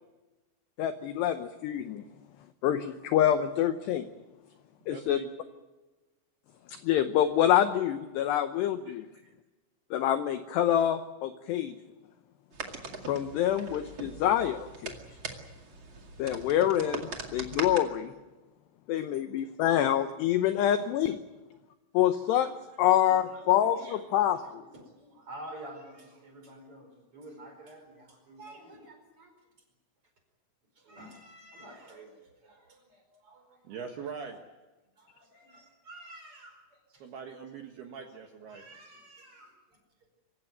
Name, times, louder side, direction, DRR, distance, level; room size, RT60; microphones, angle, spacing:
voice 1, 0.8-2.0 2.6-4.1 4.9-5.2 6.7-9.1 9.9-11.7 13.1-14.9 16.2-18.1 18.9-21.2 21.9-22.5 22.8-24.6, left 11 dB, 80° left, 9 dB, 2.5 m, -26 dB
voice 2, 4.9-5.3 8.9-9.3 33.6-34.4 37.0-38.6, right 6 dB, 65° right, 4 dB, 2.9 m, -42 dB
sound 1, 12.5-17.8, right 4 dB, 45° right, 1.5 m, -41 dB
voice 3, 19.3-19.8 20.5-20.8 22.2-29.3 30.7-33.8 34.9-37.1 37.9-38.1 38.5-39.8, right 1 dB, 30° right, 5 dB, 5.1 m, -50 dB
25.5 x 16.0 x 9.3 m, 1.1 s
omnidirectional pair, 5.9 m